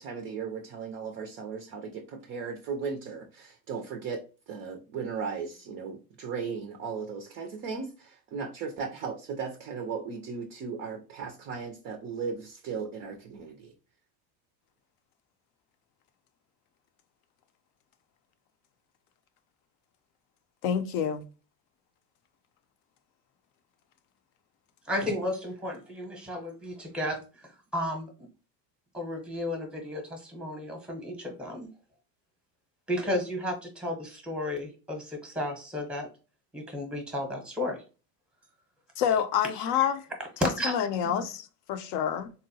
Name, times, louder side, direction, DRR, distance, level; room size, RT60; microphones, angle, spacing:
voice 1, 0.0-4.2 4.5-13.7, right 5 dB, 30° right, 0.4 m, -36 dB
voice 2, 20.6-21.3 39.0-40.1 40.6-42.3, left 8 dB, 55° left, 0.5 m, -28 dB
voice 3, 24.9-28.3 28.9-31.7 32.9-36.1 36.5-37.8 40.4-40.7 41.0-41.2, left 1 dB, ahead, 0.7 m, -33 dB
3.7 x 2.1 x 2.7 m
supercardioid pair, 125°, 45 cm